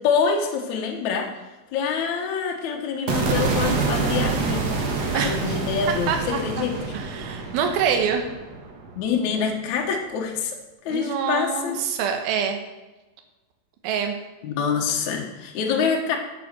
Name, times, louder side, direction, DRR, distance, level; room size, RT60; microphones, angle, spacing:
voice 1, 0.0-1.3 1.7-4.6 5.1-6.9 8.9-10.5 10.8-11.8 14.4-16.2, left 6 dB, 90° left, 1 dB, 1.6 m, -25 dB
sound 1, 3.1-9.3, right 4 dB, 90° right, 1.4 m, -27 dB
voice 2, 6.1-6.4 6.9-8.3 10.9-12.6 13.8-14.1, right 7 dB, 70° right, 4 dB, 2.6 m, -25 dB
8.5 x 8.3 x 6.6 m, 1.1 s
omnidirectional pair, 5.4 m